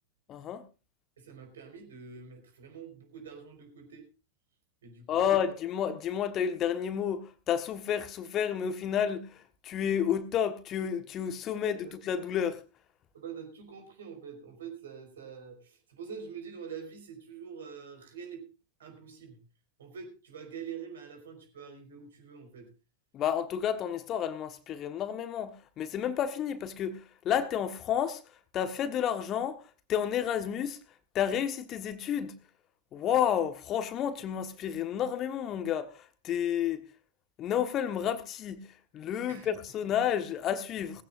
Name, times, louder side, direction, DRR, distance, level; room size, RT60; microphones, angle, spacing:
voice 1, 0.3-0.6 5.1-9.4 9.6-12.6 23.1-28.2 28.5-29.6 29.9-30.8 31.1-32.3 32.9-36.8 37.4-38.7 38.9-41.0, left 9 dB, 30° left, 1.3 m, -30 dB
voice 2, 1.2-4.0 4.8-5.4 11.5-11.9 13.1-18.5 18.8-19.4 19.8-22.7 39.3-39.5, right 6 dB, 65° right, 4.9 m, -45 dB
19.5 x 15.5 x 2.6 m
figure-of-eight pair, 90°, 0 cm